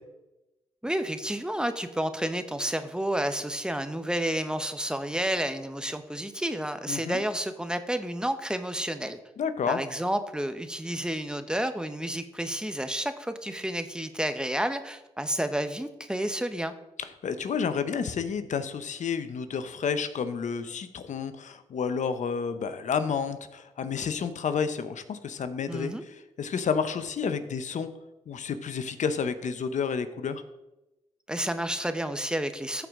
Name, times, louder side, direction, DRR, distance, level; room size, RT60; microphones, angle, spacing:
voice 1, 0.8-9.2 9.7-16.7 25.7-26.0 31.3-32.9, right 1 dB, 5° right, 9 dB, 1.0 m, -30 dB
voice 2, 6.9-7.2 9.4-9.8 17.0-27.9 28.3-30.4, left 6 dB, 65° left, 11 dB, 0.8 m, -30 dB
14.0 x 4.7 x 3.7 m, 0.97 s
supercardioid pair, 45°, 13 cm